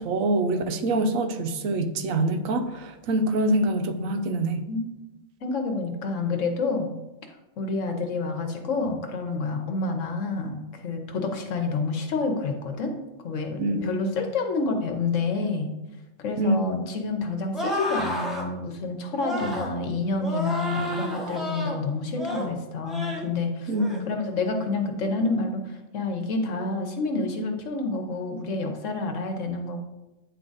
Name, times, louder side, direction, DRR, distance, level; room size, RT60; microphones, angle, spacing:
voice 1, 0.0-4.7 13.6-14.1 16.4-16.8 23.7-24.1, right 1 dB, 85° right, 8 dB, 1.1 m, -25 dB
voice 2, 5.4-6.9 7.6-10.6 10.8-12.9 13.2-15.7 16.2-23.7 24.1-29.8, left 3 dB, 70° left, 4 dB, 1.2 m, -28 dB
sound 1, 17.5-18.5 19.2-19.7 20.2-21.8 22.1-22.5 22.9-23.3 23.7-24.0, equal, ahead, 0.9 m, -31 dB
9.0 x 3.7 x 3.9 m, 1.0 s
omnidirectional pair, 1.4 m